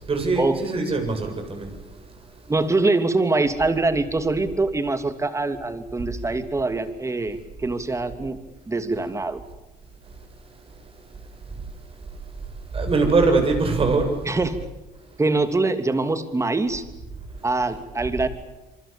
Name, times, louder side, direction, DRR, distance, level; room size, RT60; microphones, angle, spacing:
voice 1, 0.1-1.7 12.7-14.2, right 3 dB, 35° right, 5 dB, 7.9 m, -22 dB
voice 2, 2.5-8.4 8.7-9.4 14.3-14.6 15.2-16.9 17.4-18.3, right 3 dB, 15° right, 9 dB, 2.8 m, -24 dB
27.0 x 24.5 x 7.0 m, 1.1 s
cardioid pair, 110°, 17 cm